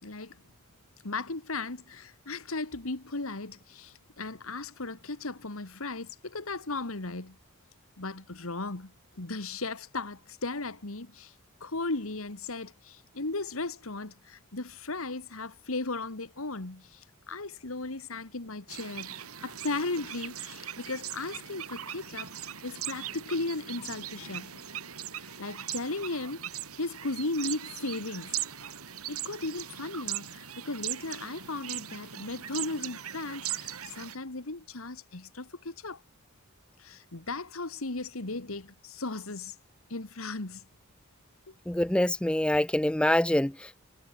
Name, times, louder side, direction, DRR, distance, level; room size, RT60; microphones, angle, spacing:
voice 1, 0.0-0.4 1.0-7.4 8.0-11.3 11.6-24.6 25.4-26.5 26.8-28.3 29.1-36.0 36.8-39.6 39.9-40.7 41.5-41.6, left 3 dB, 70° left, 1.9 m, -36 dB
sound 1, 18.7-34.2, right 11 dB, 90° right, 6.5 m, -39 dB
voice 2, 41.7-43.8, left 1 dB, 5° left, 0.4 m, -25 dB
head